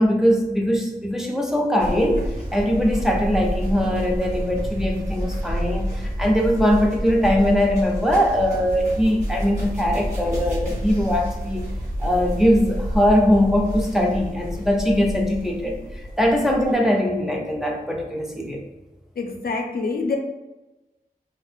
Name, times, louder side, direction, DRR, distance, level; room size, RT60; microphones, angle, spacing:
voice 1, 0.0-11.7 12.0-15.8 16.2-18.6, equal, 5° right, 0 dB, 0.5 m, -21 dB
sound 1, 1.8-16.7, equal, 50° right, 1.2 m, -29 dB
voice 2, 19.2-20.2, left 4 dB, 80° left, 2 dB, 0.5 m, -26 dB
2.8 x 2.5 x 3.5 m, 1.0 s
wide cardioid pair, 85°, 16 cm